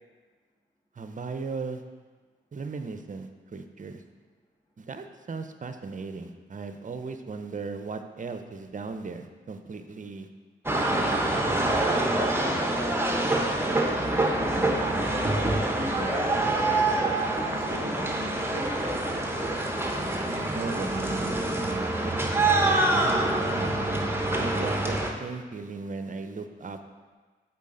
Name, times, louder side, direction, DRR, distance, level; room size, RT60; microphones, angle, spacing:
voice 1, 1.0-1.8 2.5-4.0 4.8-10.3 10.9-11.6 20.3-22.4 22.7-23.7 24.3-26.8, right 4 dB, 40° right, 8 dB, 0.6 m, -37 dB
sound 1, 10.7-25.1, right 2 dB, 10° right, 1.0 m, -26 dB
voice 2, 12.7-19.6, left 1 dB, 20° left, -2 dB, 1.6 m, -39 dB
8.2 x 4.1 x 3.9 m, 1.4 s
supercardioid pair, 45°, 21 cm